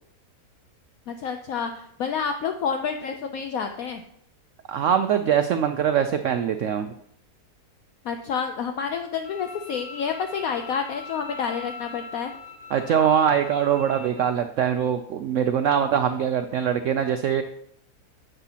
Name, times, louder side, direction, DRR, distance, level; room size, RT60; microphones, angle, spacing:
voice 1, 1.1-4.0 8.0-12.3, left 6 dB, 65° left, 6 dB, 0.9 m, -29 dB
voice 2, 4.7-6.9 12.7-17.4, right 8 dB, 70° right, 8 dB, 0.7 m, -23 dB
Bowed string instrument, 9.2-14.3, left 4 dB, 90° left, 2.9 m, -41 dB
9.8 x 7.9 x 2.8 m, 0.69 s
omnidirectional pair, 1.8 m